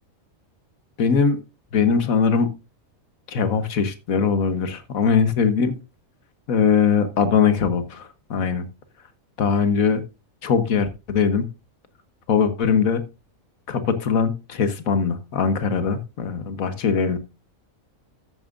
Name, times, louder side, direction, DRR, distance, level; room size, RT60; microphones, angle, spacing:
voice 1, 1.0-1.4 1.7-2.5 3.3-5.8 6.5-8.6 9.4-10.0 10.4-11.5 12.3-13.0 13.7-17.2, left 6 dB, 85° left, 11 dB, 1.6 m, -21 dB
13.0 x 8.9 x 2.5 m, 0.27 s
omnidirectional pair, 1.4 m